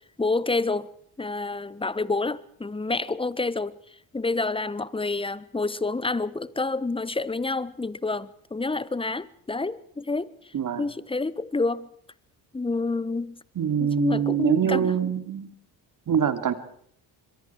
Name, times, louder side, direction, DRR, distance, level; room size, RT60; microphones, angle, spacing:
voice 1, 0.2-0.9 1.2-3.8 4.1-11.9 12.5-13.4 13.8-14.9, left 3 dB, 15° left, 1.2 m, -28 dB
voice 2, 10.5-10.8 13.6-15.5 16.1-16.5, right 8 dB, 50° right, 2.7 m, -24 dB
26.0 x 22.5 x 4.7 m
supercardioid pair, 65°, 42 cm